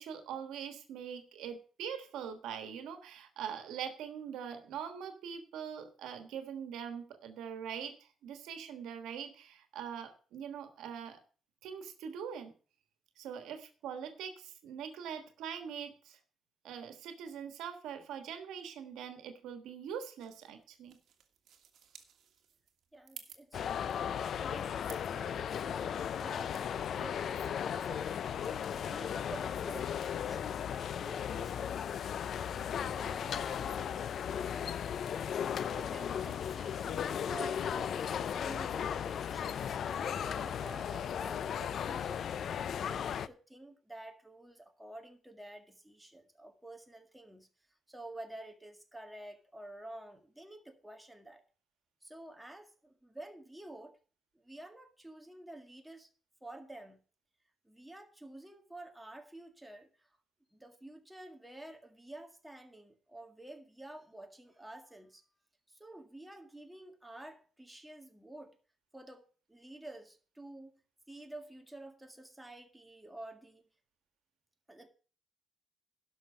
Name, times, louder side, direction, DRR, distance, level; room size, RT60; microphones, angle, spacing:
voice 1, 0.0-11.2 11.6-12.5 13.2-16.2 16.6-21.0, right 8 dB, 85° right, 7 dB, 1.4 m, -43 dB
sound 1, 20.2-25.2, right 8 dB, 70° right, 1.5 m, -56 dB
voice 2, 22.9-24.0 24.4-26.6 26.9-32.3 32.8-35.2 35.6-47.5 47.9-51.4 52.0-54.0 54.3-56.1 56.4-57.0 57.6-60.1 60.5-65.2 65.7-68.6 68.9-70.8 71.1-73.6 74.7-74.9, right 1 dB, 5° right, 4 dB, 1.8 m, -50 dB
sound 2, 23.5-43.3, left 8 dB, 60° left, 0.5 m, -36 dB
11.5 x 6.1 x 6.0 m, 0.40 s
cardioid pair, 90°, 0 cm